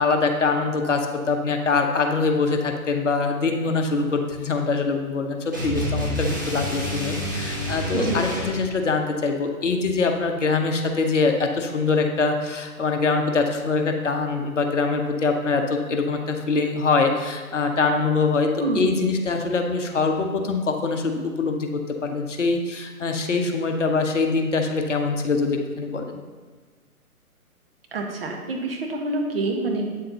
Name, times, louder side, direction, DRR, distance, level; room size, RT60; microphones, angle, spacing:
voice 1, 0.0-18.5 18.7-26.2, left 4 dB, 55° left, 4 dB, 0.9 m, -23 dB
sound 1, 5.5-8.6, equal, 15° right, 0.5 m, -28 dB
voice 2, 18.6-18.9 27.9-29.9, right 2 dB, 40° right, 1 dB, 1.1 m, -26 dB
8.4 x 7.4 x 2.8 m, 1.5 s
figure-of-eight pair, 135°, 44 cm